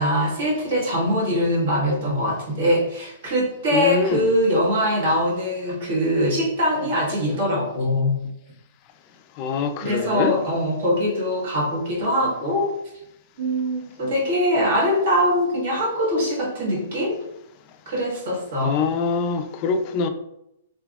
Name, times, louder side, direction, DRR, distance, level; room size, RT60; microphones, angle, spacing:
voice 1, 0.0-8.2 9.8-12.7 13.4-17.2 17.9-18.8, equal, 60° right, 1.4 m, -22 dB
voice 2, 3.7-4.3 9.4-10.3 18.6-20.1, left 5 dB, 35° left, 0.3 m, -24 dB
3.3 x 2.8 x 2.3 m
hypercardioid pair, 140°, 0 cm